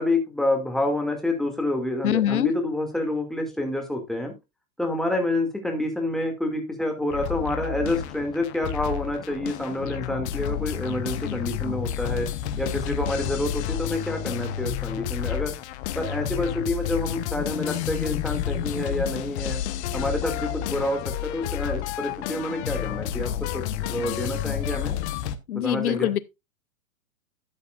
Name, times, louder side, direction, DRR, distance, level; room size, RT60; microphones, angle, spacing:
voice 1, 0.0-4.3 4.8-12.3 12.6-15.5 15.9-19.6 19.9-24.9 25.6-26.1, left 1 dB, ahead, 2.2 m, -28 dB
voice 2, 2.0-2.5 25.5-26.2, left 12 dB, 85° left, 0.7 m, -23 dB
sound 1, 7.1-25.4, left 11 dB, 50° left, 1.1 m, -30 dB
12.5 x 8.2 x 2.4 m
hypercardioid pair, 130°, 43 cm